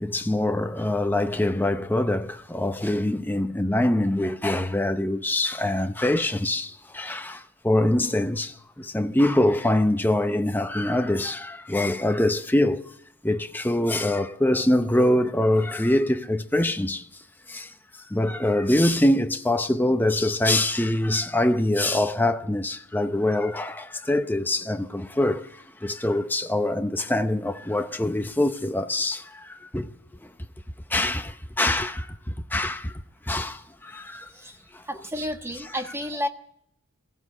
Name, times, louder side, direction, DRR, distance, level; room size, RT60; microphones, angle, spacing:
voice 1, 0.0-12.9 13.2-17.0 17.5-17.7 18.1-25.4 25.8-29.9 30.9-32.1 32.5-32.9 33.3-34.3, left 1 dB, 10° left, 0.7 m, -24 dB
voice 2, 34.9-36.3, equal, 10° right, 1.2 m, -31 dB
21.0 x 15.0 x 8.7 m
head